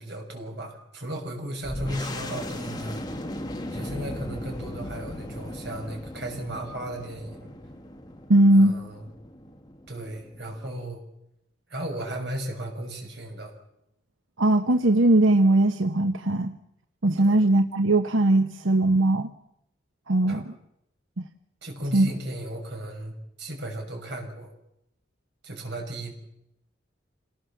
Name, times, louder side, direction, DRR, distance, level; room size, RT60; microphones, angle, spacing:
voice 1, 0.0-3.0 3.7-7.5 8.5-9.1 9.9-11.0 11.7-13.5 17.2-17.3 20.3-20.4 21.6-24.5 25.4-26.1, right 1 dB, 60° right, 2 dB, 6.2 m, -35 dB
sound 1, 1.6-10.8, left 1 dB, 20° left, 1.8 m, -38 dB
voice 2, 8.3-8.7 14.4-16.5 17.0-19.3 20.1-20.5 21.2-21.3 21.9-22.1, right 1 dB, 90° right, 7 dB, 1.0 m, -20 dB
27.0 x 18.5 x 7.3 m, 0.82 s
head